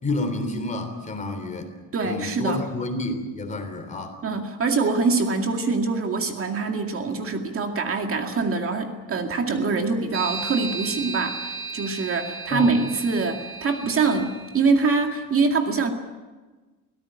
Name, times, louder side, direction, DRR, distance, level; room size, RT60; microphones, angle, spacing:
voice 1, 0.0-1.7 2.0-4.2 12.5-12.7, left 2 dB, 25° left, 6 dB, 3.5 m, -29 dB
voice 2, 1.9-2.6 4.2-15.9, right 4 dB, 45° right, 4 dB, 2.2 m, -24 dB
sound 1, 10.1-14.8, right 4 dB, 60° right, 2.9 m, -34 dB
24.0 x 17.5 x 8.8 m, 1.3 s
cardioid pair, 155°, 32 cm